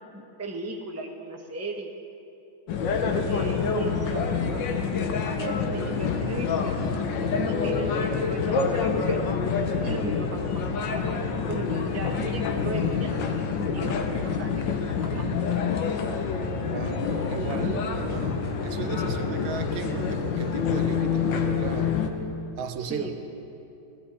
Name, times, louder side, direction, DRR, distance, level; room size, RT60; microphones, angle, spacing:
voice 1, 0.1-1.9 3.3-6.9 7.4-9.2 9.8-11.2 11.5-15.4 22.8-23.1, right 2 dB, 15° right, 1 dB, 0.6 m, -36 dB
sound 1, 2.7-22.1, left 5 dB, 70° left, 1.6 m, -27 dB
voice 2, 16.6-22.0 22.6-23.1, right 7 dB, 80° right, 8 dB, 1.5 m, -36 dB
18.0 x 14.0 x 4.3 m, 2.8 s
omnidirectional pair, 2.2 m